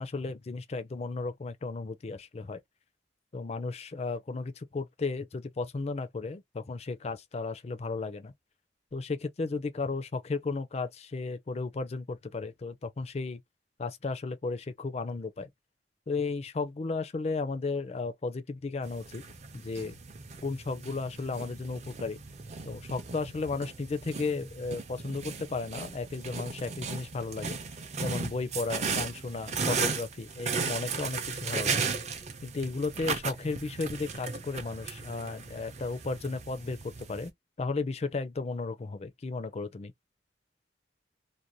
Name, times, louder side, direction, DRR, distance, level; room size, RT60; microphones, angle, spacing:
voice 1, 0.0-2.6 3.3-8.3 8.9-13.4 13.8-15.5 16.1-19.2 19.5-19.9 20.4-22.2 22.6-27.6 28.0-31.9 32.4-36.8 37.1-37.3 37.6-39.9, left 3 dB, 35° left, 0.4 m, -34 dB
sound 1, 18.8-37.3, right 5 dB, 40° right, 0.5 m, -36 dB
2.6 x 2.1 x 2.9 m
head